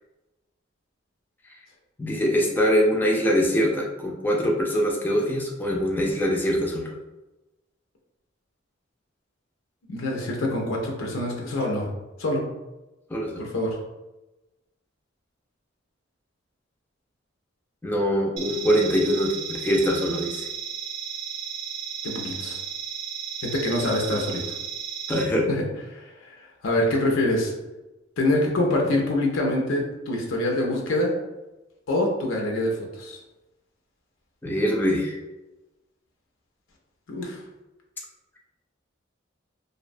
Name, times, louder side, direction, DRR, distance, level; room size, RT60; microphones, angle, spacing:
voice 1, 2.0-6.9 13.1-13.5 17.8-20.5 25.1-25.5 34.4-35.2, equal, 10° left, -1 dB, 0.3 m, -23 dB
voice 2, 9.9-11.9 12.2-12.4 13.4-13.8 22.0-22.6 23.4-24.4 25.5-25.6 25.9-26.1 26.6-27.5 28.2-31.1 31.9-32.7 33.0-33.2 37.1-37.4, left 1 dB, 85° left, 0 dB, 0.5 m, -25 dB
sound 1, 18.4-25.2, right 7 dB, 75° right, 0.5 m, -34 dB
2.6 x 2.1 x 2.5 m, 1.1 s
head